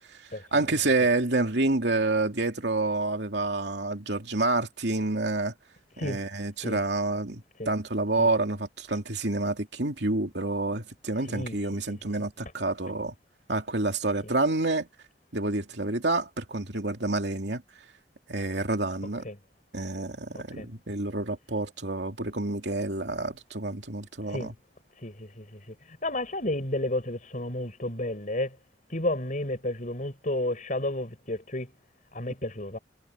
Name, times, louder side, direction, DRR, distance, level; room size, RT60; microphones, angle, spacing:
voice 1, 0.5-5.5 6.0-13.1 13.5-14.9 15.3-17.6 18.3-19.2 19.7-24.5, right 2 dB, 75° right, 2.8 m, -28 dB
voice 2, 11.3-11.6 11.9-12.0 14.2-14.3 19.2-19.4 20.5-20.7 24.3-24.5 25.0-28.6 28.9-31.7 32.1-32.8, left 1 dB, 45° left, 7.3 m, -32 dB
head